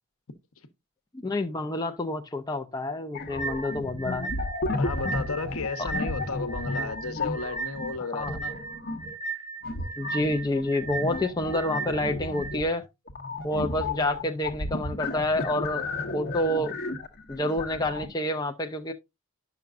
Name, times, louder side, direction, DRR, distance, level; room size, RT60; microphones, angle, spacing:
voice 1, 1.1-4.3 5.8-5.9 8.1-8.4 10.0-12.8 13.4-15.9 16.1-16.7 17.3-18.9, left 1 dB, 15° left, 0.5 m, -28 dB
sound 1, 3.1-9.1 9.6-18.1, left 2 dB, 45° left, 0.9 m, -33 dB
sound 2, 3.4-12.5, right 4 dB, 20° right, 4.1 m, -36 dB
voice 2, 4.8-8.6, left 4 dB, 75° left, 1.0 m, -33 dB
10.5 x 5.9 x 2.4 m
head